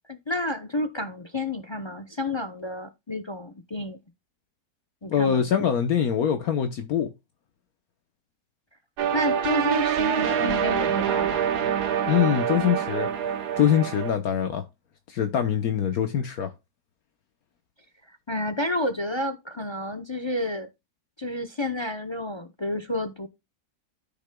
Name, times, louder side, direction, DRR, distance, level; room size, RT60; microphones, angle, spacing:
voice 1, 0.1-4.0 5.0-5.5 9.1-11.4 18.1-20.7 21.2-23.3, left 1 dB, 35° left, 0.4 m, -30 dB
voice 2, 5.1-7.1 12.1-13.1 13.6-14.6 15.1-16.5, left 9 dB, 70° left, 1.3 m, -23 dB
sound 1, 9.0-14.1, right 8 dB, 85° right, 1.5 m, -25 dB
13.5 x 6.0 x 2.2 m
omnidirectional pair, 1.7 m